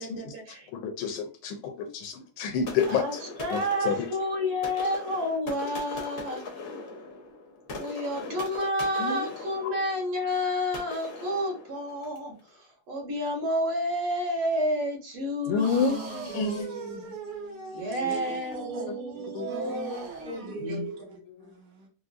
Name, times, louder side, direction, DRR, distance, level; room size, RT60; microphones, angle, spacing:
voice 1, 0.0-0.6 2.8-6.4 7.8-16.5 17.7-20.8, equal, 80° right, 2.0 m, -30 dB
voice 2, 0.8-3.0 3.5-3.6 3.8-4.0 9.0-9.2 15.5-16.7 19.3-19.5 20.6-20.9, left 5 dB, 75° left, 1.4 m, -28 dB
sound 1, 2.7-12.3, left 3 dB, 60° left, 0.8 m, -41 dB
sound 2, 15.6-20.5, right 4 dB, 60° right, 1.5 m, -40 dB
voice 3, 16.3-17.1 18.0-18.9 19.5-21.9, right 4 dB, 45° right, 0.6 m, -39 dB
4.9 x 2.0 x 2.4 m
omnidirectional pair, 2.4 m